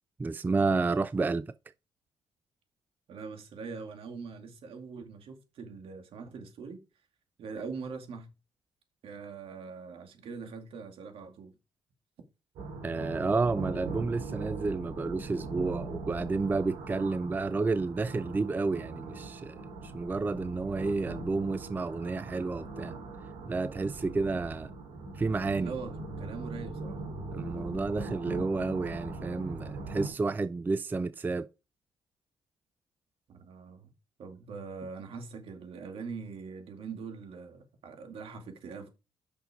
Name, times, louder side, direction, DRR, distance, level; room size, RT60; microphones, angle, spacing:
voice 1, 0.2-1.5 12.8-23.0 23.5-24.7 25.1-25.7 27.3-31.5, right 3 dB, 20° right, 0.4 m, -31 dB
voice 2, 3.1-6.8 7.4-8.3 9.0-11.5 25.6-27.0 33.3-33.9 34.2-38.9, right 5 dB, 65° right, 2.2 m, -42 dB
sound 1, 12.6-30.1, right 3 dB, 85° right, 2.9 m, -40 dB
6.1 x 5.8 x 4.9 m
cardioid pair, 85°, 10 cm